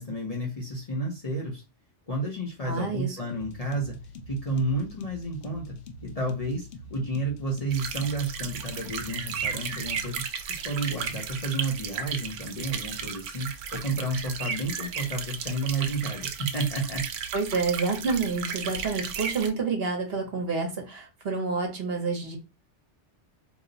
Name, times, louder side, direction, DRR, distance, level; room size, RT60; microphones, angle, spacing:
voice 1, 0.0-1.6 2.1-4.0 4.3-5.8 6.0-10.2 10.5-17.0, right 2 dB, 35° left, -2 dB, 0.7 m, -31 dB
voice 2, 2.6-3.2 17.3-22.4, right 4 dB, 55° right, 2 dB, 1.1 m, -28 dB
sound 1, 3.3-10.2, left 1 dB, 75° left, 0.9 m, -44 dB
sound 2, 7.7-19.5, right 7 dB, 85° right, 0.9 m, -34 dB
2.9 x 2.1 x 3.8 m, 0.27 s
omnidirectional pair, 1.2 m